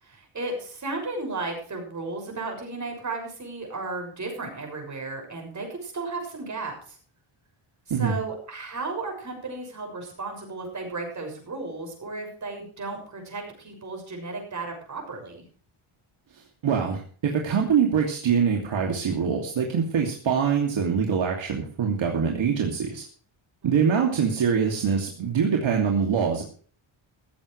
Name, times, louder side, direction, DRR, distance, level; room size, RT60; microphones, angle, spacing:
voice 1, 0.0-7.0 8.0-15.4 23.6-23.9, right 3 dB, 35° right, 2 dB, 6.6 m, -34 dB
voice 2, 16.6-23.0 23.6-26.4, right 6 dB, 65° right, 0 dB, 2.8 m, -24 dB
16.0 x 15.0 x 3.3 m, 0.43 s
wide cardioid pair, 155°, 49 cm